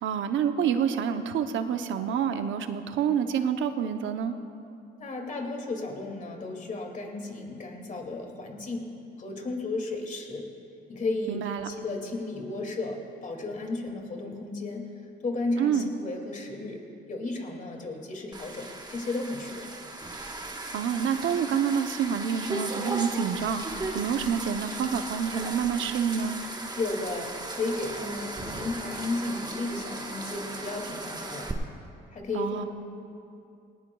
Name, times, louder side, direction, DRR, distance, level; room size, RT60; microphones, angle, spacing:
voice 1, 0.0-4.4 11.3-11.7 15.6-15.9 20.7-26.4 32.3-32.6, right 7 dB, 80° right, 8 dB, 0.8 m, -28 dB
voice 2, 5.0-8.9 9.2-10.5 10.9-14.9 15.2-16.8 17.1-19.7 26.8-31.5 32.1-32.7, left 2 dB, 40° left, 1 dB, 2.4 m, -34 dB
sound 1, 18.3-31.5, right 2 dB, 20° right, 1.3 m, -37 dB
19.0 x 18.5 x 2.3 m, 2.6 s
cardioid pair, 90°, 20 cm